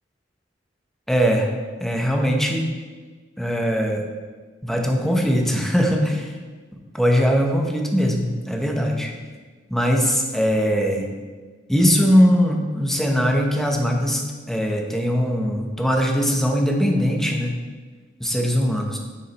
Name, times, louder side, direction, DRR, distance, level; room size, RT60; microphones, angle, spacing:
voice 1, 1.1-1.5 1.8-2.6 3.4-4.0 4.6-6.3 6.9-9.1 9.7-11.1 11.7-14.2 14.5-17.6 18.2-19.0, equal, ahead, 1 dB, 0.9 m, -20 dB
9.7 x 4.9 x 4.2 m, 1.4 s
head